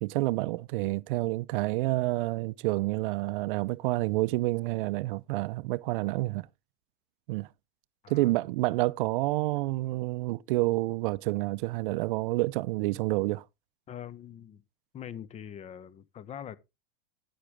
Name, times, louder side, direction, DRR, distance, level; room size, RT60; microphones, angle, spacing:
voice 1, 0.0-6.5 7.3-7.5 8.1-13.4, right 19 dB, 60° right, 0.5 m, -29 dB
voice 2, 13.9-14.6 14.9-16.6, left 9 dB, 20° left, 0.8 m, -43 dB
10.5 x 8.4 x 3.4 m
supercardioid pair, 140°, 30 cm